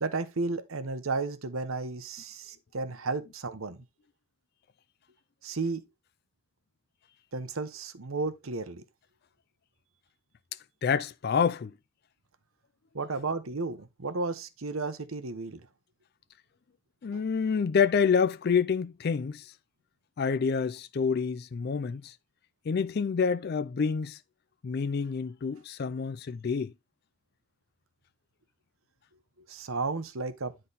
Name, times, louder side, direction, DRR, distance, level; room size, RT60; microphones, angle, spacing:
voice 1, 0.0-3.8 5.4-5.9 7.3-8.8 12.9-15.7 17.1-17.2 29.5-30.5, right 3 dB, 85° right, 0.9 m, -33 dB
voice 2, 10.8-11.7 17.0-19.4 20.2-22.1 22.7-24.2 24.6-26.7, left 6 dB, 50° left, 0.4 m, -27 dB
10.0 x 3.9 x 4.0 m
head